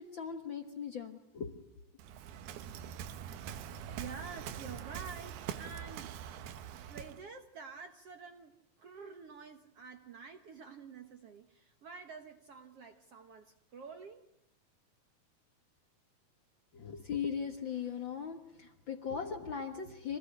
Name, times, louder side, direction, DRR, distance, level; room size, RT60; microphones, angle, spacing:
voice 1, 0.0-1.6 16.7-20.2, left 7 dB, 85° left, 6 dB, 1.0 m, -39 dB
Waves surf, 2.0-7.2, right 9 dB, 80° right, 3.1 m, -44 dB
voice 2, 4.0-6.2 6.7-14.2, right 5 dB, 60° right, 6 dB, 1.7 m, -49 dB
26.0 x 19.0 x 9.9 m, 0.85 s
omnidirectional pair, 4.5 m